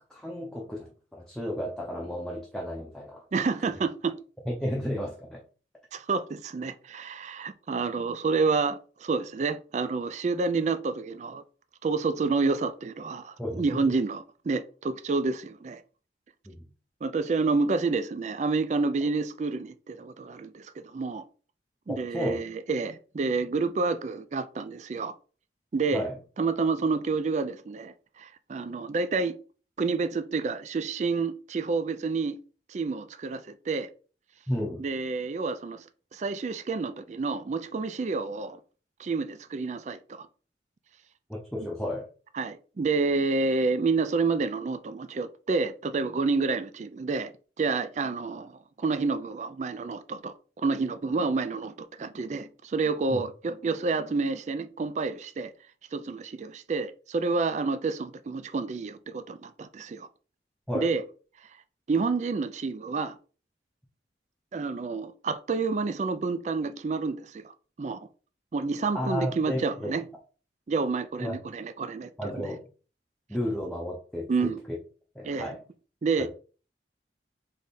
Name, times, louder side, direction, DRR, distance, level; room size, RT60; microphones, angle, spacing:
voice 1, 0.1-3.2 4.5-5.4 13.4-14.0 16.5-16.7 21.9-22.4 25.9-26.2 34.5-34.9 41.3-42.1 53.1-53.2 60.7-60.9 68.9-69.9 71.2-71.4 72.2-72.6 73.3-74.8 75.1-75.6 76.2-76.3, equal, 5° left, 0.7 m, -33 dB
voice 2, 3.3-4.2 5.9-11.4 11.8-15.8 17.0-21.2 21.9-25.1 25.7-26.0 26.4-29.3 29.8-32.4 32.7-33.9 34.8-35.8 36.1-38.6 39.0-40.3 42.3-47.3 47.6-55.5 55.9-60.1 60.7-61.0 61.9-63.2 64.5-68.0 68.5-70.0 70.7-72.1 74.3-74.6 75.2-75.6 76.0-76.3, right 4 dB, 40° right, 0.3 m, -29 dB
3.5 x 3.5 x 4.1 m
head